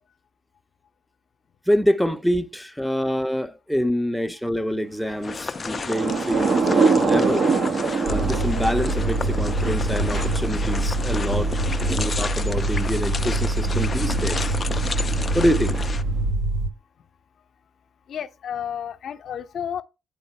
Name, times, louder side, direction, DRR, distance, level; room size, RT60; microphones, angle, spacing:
voice 1, 1.7-7.5 8.1-14.5 15.3-15.8, equal, ahead, 0.7 m, -26 dB
sound 1, 5.2-16.0, left 4 dB, 35° left, 0.4 m, -33 dB
Thunder / Rain, 5.6-16.2, right 4 dB, 60° right, 1.1 m, -26 dB
sound 2, 8.1-16.7, right 2 dB, 85° right, 0.9 m, -25 dB
voice 2, 18.1-19.8, left 8 dB, 65° left, 0.8 m, -32 dB
8.4 x 3.8 x 4.4 m
cardioid pair, 90°, 0 cm